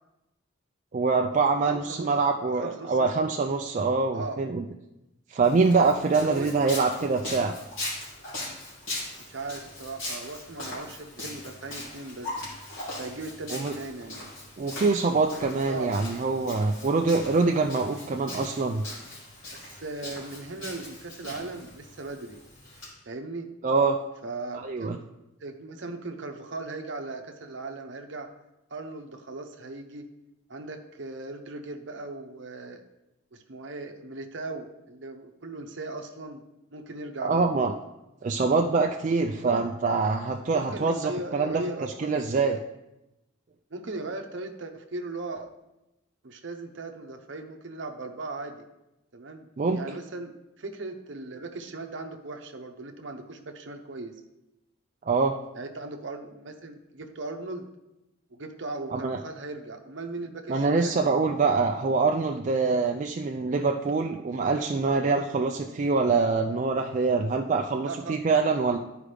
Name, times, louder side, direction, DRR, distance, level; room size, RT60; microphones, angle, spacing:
voice 1, 0.9-4.6 5.3-7.5 13.5-13.7 14.6-18.8 23.6-24.0 24.6-25.0 37.2-37.7 38.2-41.6 42.0-42.6 49.6-49.8 55.1-55.4 58.9-59.2 60.5-68.8, right 4 dB, 40° right, 2 dB, 0.3 m, -24 dB
voice 2, 1.5-2.1 2.5-3.1 4.1-4.4 6.1-6.5 9.2-12.3 13.0-14.3 15.7-15.9 19.5-22.4 23.1-23.5 24.2-24.9 25.4-28.3 28.7-30.1 30.5-32.8 33.3-36.4 36.7-37.5 39.4-39.6 40.5-42.6 43.7-45.5 46.2-48.6 49.1-54.1 55.5-57.7 58.3-61.0 67.8-68.2, right 2 dB, 60° right, 4 dB, 0.8 m, -38 dB
Walk footsteps, 5.4-22.9, left 2 dB, 75° left, 3.0 m, -40 dB
11.5 x 4.9 x 3.3 m, 0.95 s
head